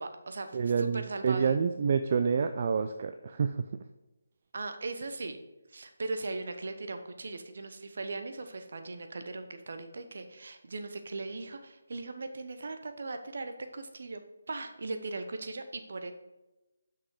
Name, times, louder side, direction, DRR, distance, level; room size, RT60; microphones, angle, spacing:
voice 1, 0.0-1.6 4.5-5.4 5.7-14.2 14.5-16.1, right 3 dB, 60° right, 8 dB, 0.9 m, -39 dB
voice 2, 0.5-3.7, right 6 dB, 40° right, 8 dB, 0.4 m, -28 dB
6.3 x 5.9 x 4.8 m, 1.0 s
figure-of-eight pair, 155°, 0 cm